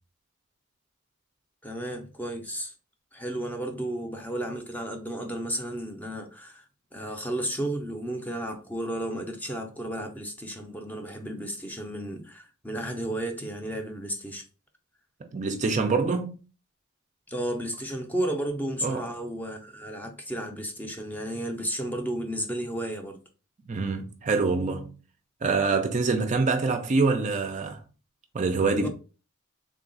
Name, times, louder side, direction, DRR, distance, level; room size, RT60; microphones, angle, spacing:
voice 1, 1.6-2.7 3.1-6.6 6.9-14.4 17.3-23.2 28.8-28.9, right 1 dB, 10° left, 0.6 m, -33 dB
voice 2, 15.2-16.4 18.8-19.1 23.7-24.9 25.4-27.8 28.3-28.9, right 4 dB, 35° right, 0.4 m, -25 dB
3.6 x 2.3 x 3.9 m
head